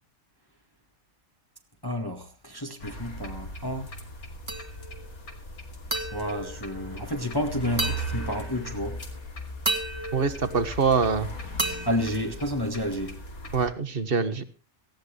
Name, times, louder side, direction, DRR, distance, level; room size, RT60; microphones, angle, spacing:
voice 1, 1.8-3.9 6.1-9.0 11.8-13.2, equal, 15° left, 1.7 m, -30 dB
sound 1, 2.8-13.7, equal, 85° left, 3.1 m, -38 dB
sound 2, 4.5-5.1 5.9-7.3 7.8-8.8 9.7-11.1 11.6-13.0, right 2 dB, 20° right, 2.0 m, -34 dB
voice 2, 10.1-11.3 13.5-14.4, right 5 dB, 40° right, 1.7 m, -24 dB
18.5 x 16.0 x 3.3 m
omnidirectional pair, 1.5 m